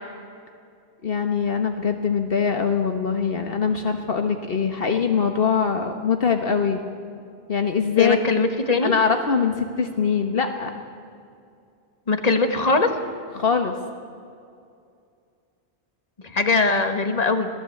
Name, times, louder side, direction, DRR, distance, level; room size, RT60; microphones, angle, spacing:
voice 1, 1.0-6.8 7.5-8.2 8.8-10.7 13.3-13.8, left 6 dB, 65° left, 5 dB, 1.4 m, -22 dB
voice 2, 8.0-8.9 12.1-12.9 16.2-17.5, left 3 dB, 40° left, 6 dB, 1.7 m, -21 dB
26.0 x 17.5 x 8.5 m, 2.4 s
omnidirectional pair, 1.1 m